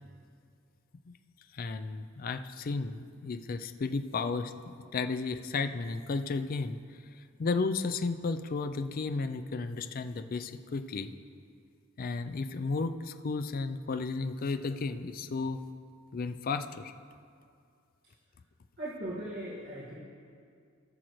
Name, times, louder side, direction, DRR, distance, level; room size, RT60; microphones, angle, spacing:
voice 1, 1.5-4.5 4.9-6.8 7.4-11.1 12.0-15.6 16.1-16.9, left 4 dB, 45° left, 9 dB, 0.4 m, -33 dB
voice 2, 18.8-20.0, right 1 dB, 50° right, -10 dB, 1.8 m, -38 dB
18.0 x 6.3 x 3.1 m, 2.3 s
head